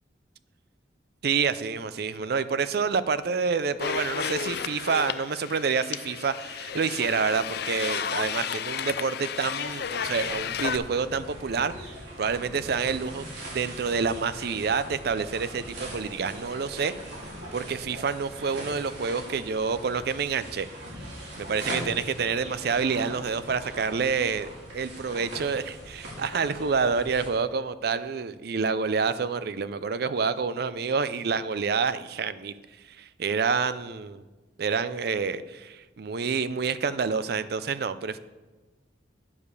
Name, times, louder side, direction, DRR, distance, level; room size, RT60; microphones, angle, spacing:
voice 1, 1.2-11.9 12.2-13.3 13.5-16.9 17.5-20.7 21.4-24.5 24.7-32.5 33.0-34.2 34.6-38.2, right 5 dB, 60° right, 14 dB, 0.5 m, -28 dB
sound 1, 3.8-10.8, left 8 dB, 60° left, 0.4 m, -32 dB
sound 2, 9.3-27.3, right 1 dB, 85° right, 3.4 m, -41 dB
9.7 x 4.9 x 6.8 m, 1.2 s
head